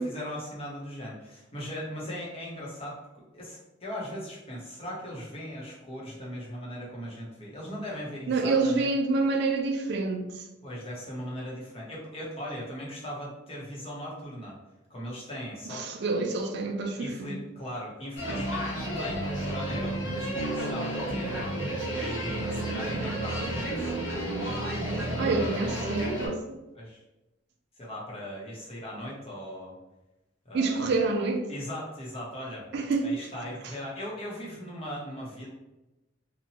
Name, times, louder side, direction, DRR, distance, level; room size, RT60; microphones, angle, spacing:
voice 1, 0.0-8.9 10.6-14.6 14.9-15.9 17.0-21.4 21.9-23.9 25.1-25.6 26.7-27.0 27.8-29.8 30.5-31.0 31.5-32.7 33.0-35.5, equal, 30° left, 0.8 m, -39 dB
voice 2, 8.3-10.4 15.7-17.4 25.2-26.6 30.5-31.4 32.7-33.1, right 3 dB, 60° right, 0.4 m, -27 dB
sound 1, 18.2-26.3, right 1 dB, 75° left, 1.1 m, -31 dB
2.8 x 2.1 x 2.8 m
head